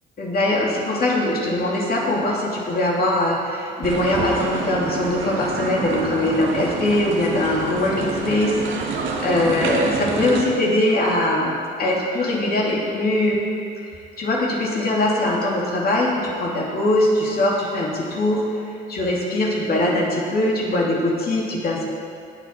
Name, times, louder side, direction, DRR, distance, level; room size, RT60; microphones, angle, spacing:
voice 1, 0.2-8.6 8.8-8.9 9.2-13.5 13.9-18.6 18.9-21.8, left 1 dB, 50° left, -3 dB, 2.8 m, -21 dB
sound 1, 3.8-10.5, right 4 dB, 75° right, 1.7 m, -27 dB
18.0 x 7.1 x 4.5 m, 2.3 s
cardioid pair, 90°, 20 cm